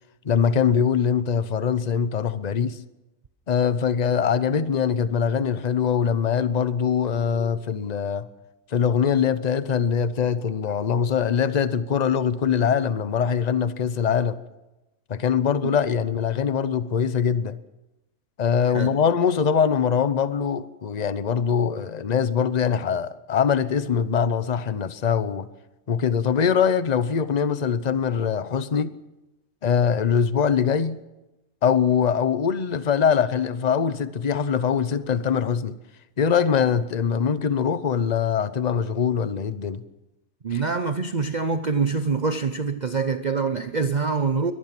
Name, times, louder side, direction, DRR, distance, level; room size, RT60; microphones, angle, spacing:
voice 1, 0.2-2.8 3.5-8.3 8.7-14.4 15.1-17.6 18.4-25.5 25.9-28.9 29.6-31.0 31.6-35.8 36.2-39.8 40.5-40.6, left 7 dB, 35° left, 0.8 m, -23 dB
voice 2, 40.4-44.5, right 4 dB, 40° right, 0.7 m, -25 dB
23.0 x 19.0 x 6.0 m
omnidirectional pair, 1.6 m